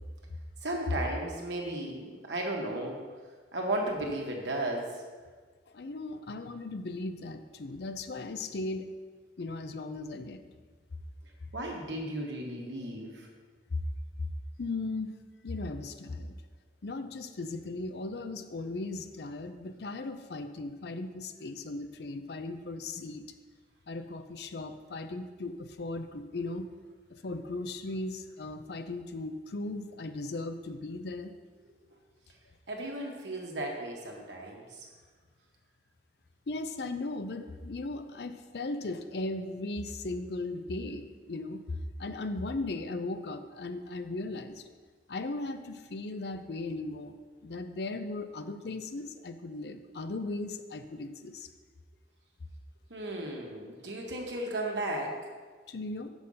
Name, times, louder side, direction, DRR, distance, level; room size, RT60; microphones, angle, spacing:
voice 1, 0.6-3.0 3.5-5.0 11.5-13.3 32.7-34.9 52.9-55.3, right 1 dB, 85° right, 0 dB, 1.5 m, -35 dB
voice 2, 5.7-8.9 9.4-10.4 13.7-13.8 14.2-14.3 14.6-15.1 15.4-16.4 16.8-23.2 23.9-26.6 27.1-31.3 36.5-44.6 45.1-51.5 55.7-56.1, left 2 dB, 65° left, 9 dB, 0.5 m, -37 dB
6.5 x 6.2 x 5.5 m, 1.5 s
head